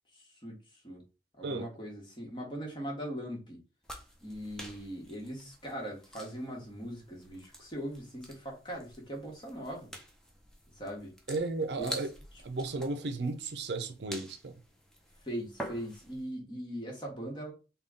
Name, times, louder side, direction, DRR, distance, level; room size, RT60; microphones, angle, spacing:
voice 1, 0.1-0.5 0.8-1.0 1.3-3.6 4.2-9.9 10.8-11.1 11.8-12.0 15.2-17.5, equal, 25° left, 1.1 m, -40 dB
sound 1, 3.8-16.2, equal, 5° left, 0.5 m, -48 dB
voice 2, 11.3-12.1 12.4-14.6, right 3 dB, 80° right, 0.5 m, -34 dB
3.7 x 2.3 x 3.6 m
head